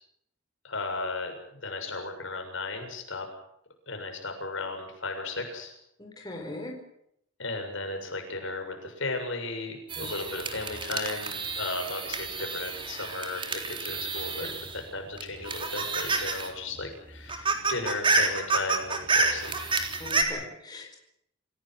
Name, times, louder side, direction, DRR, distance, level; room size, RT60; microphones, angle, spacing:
voice 1, 0.6-3.3 3.9-5.7 7.4-14.5 14.7-19.8, left 3 dB, 65° left, 4 dB, 7.1 m, -35 dB
voice 2, 6.0-6.8 10.0-10.1 20.0-21.0, left 2 dB, 20° left, 2 dB, 4.8 m, -39 dB
sound 1, 9.9-14.8 15.2-16.5 16.8-16.9 17.2-20.2, right 3 dB, 25° right, 3.7 m, -29 dB
28.5 x 17.0 x 7.8 m, 0.75 s
head